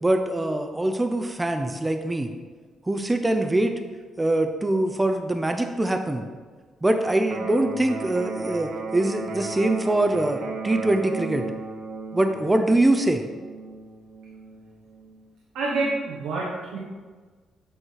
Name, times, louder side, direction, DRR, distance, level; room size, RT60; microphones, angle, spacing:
voice 1, 0.0-2.3 2.9-3.7 4.2-6.2 6.8-11.5 12.1-13.2, right 1 dB, 15° right, 6 dB, 0.6 m, -23 dB
Electric guitar, 7.2-15.2, right 4 dB, 50° right, 0.6 m, -35 dB
voice 2, 15.5-16.8, right 3 dB, 90° right, -5 dB, 1.3 m, -27 dB
8.0 x 3.1 x 5.6 m, 1.4 s
cardioid pair, 90°, 0 cm